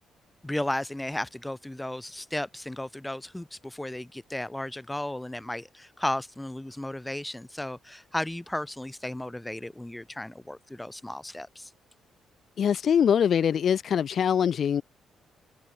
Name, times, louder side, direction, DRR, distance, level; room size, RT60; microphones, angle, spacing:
voice 1, 0.4-11.7, left 1 dB, 10° left, 0.5 m, -34 dB
voice 2, 12.6-14.8, left 8 dB, 55° left, 1.2 m, -23 dB
cardioid pair, 90°, 0 cm